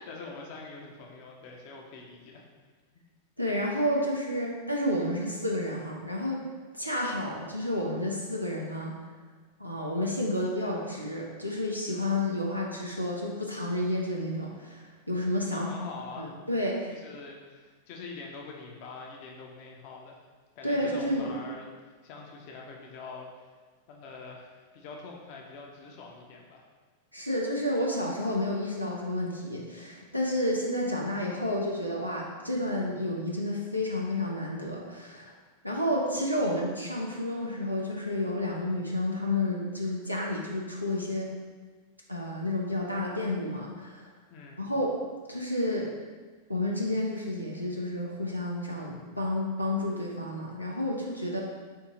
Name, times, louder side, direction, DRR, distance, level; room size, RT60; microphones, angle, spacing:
voice 1, 0.0-2.5 15.5-16.3 16.9-20.2 20.5-23.5 23.9-26.7 44.3-44.6, left 4 dB, 45° left, 0 dB, 0.6 m, -44 dB
voice 2, 3.4-6.5 6.7-8.9 9.6-15.7 16.2-17.0 20.6-21.3 27.1-35.3 35.6-41.3 42.1-44.1 44.6-45.0 45.3-45.9 46.5-51.4, left 1 dB, 90° left, -2 dB, 0.5 m, -30 dB
4.5 x 2.7 x 3.7 m, 1.4 s
figure-of-eight pair, 90°, 0 cm